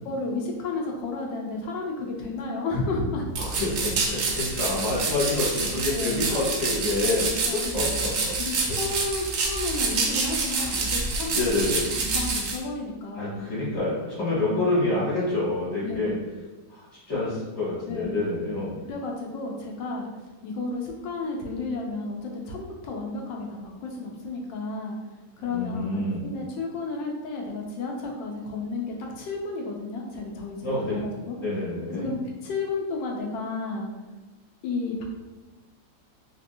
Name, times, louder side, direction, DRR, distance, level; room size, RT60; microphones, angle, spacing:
voice 1, 0.0-3.3 5.9-6.2 7.0-7.6 8.4-11.4 12.0-13.5 14.4-14.6 15.8-16.2 17.9-20.1 20.4-25.0 25.4-31.4 31.9-33.9 34.6-35.0, left 3 dB, 90° left, 0 dB, 1.3 m, -32 dB
sound 1, 3.3-12.6, right 4 dB, 70° right, 0.8 m, -27 dB
voice 2, 3.4-8.3 11.3-11.8 13.1-16.1 16.7-18.7 25.5-26.2 30.6-31.0 31.4-32.1, left 2 dB, 40° left, -10 dB, 1.4 m, -27 dB
3.3 x 2.7 x 2.6 m, 1.2 s
omnidirectional pair, 1.9 m